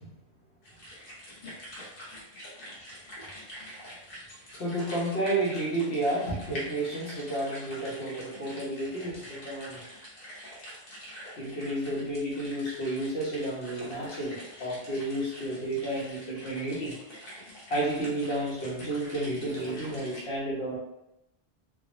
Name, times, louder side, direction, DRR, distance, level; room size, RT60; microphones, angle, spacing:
Fast Irregular Dropping Water, 0.6-20.2, equal, 60° left, 1.1 m, -45 dB
voice 1, 4.5-9.8 11.4-16.9 17.7-20.8, right 1 dB, 80° left, -5 dB, 1.2 m, -31 dB
3.5 x 2.0 x 2.5 m, 0.86 s
omnidirectional pair, 1.1 m